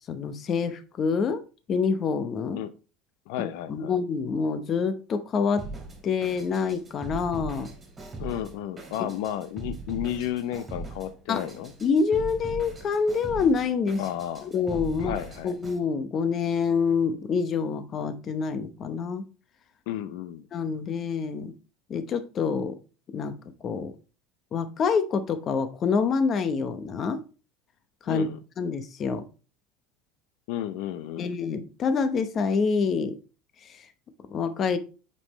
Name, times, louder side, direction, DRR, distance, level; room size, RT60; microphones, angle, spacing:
voice 1, 0.1-1.4 1.7-2.6 3.4-5.7 6.0-7.7 11.3-11.4 11.8-14.0 14.5-15.2 15.4-19.3 20.5-21.5 21.9-22.8 23.1-23.4 23.6-23.9 24.5-27.2 28.0-28.3 28.6-29.2 31.2-33.2 33.6-33.9 34.3-34.8, left 5 dB, 30° left, 11 dB, 0.8 m, -26 dB
voice 2, 3.3-3.9 8.2-11.7 14.0-14.5 15.0-15.6 19.9-20.5 28.1-28.4 30.5-31.3, left 11 dB, 75° left, 12 dB, 0.6 m, -32 dB
Drum kit, 5.6-15.8, right 2 dB, 20° right, 2.5 m, -40 dB
8.2 x 5.5 x 3.1 m, 0.34 s
supercardioid pair, 145°, 0 cm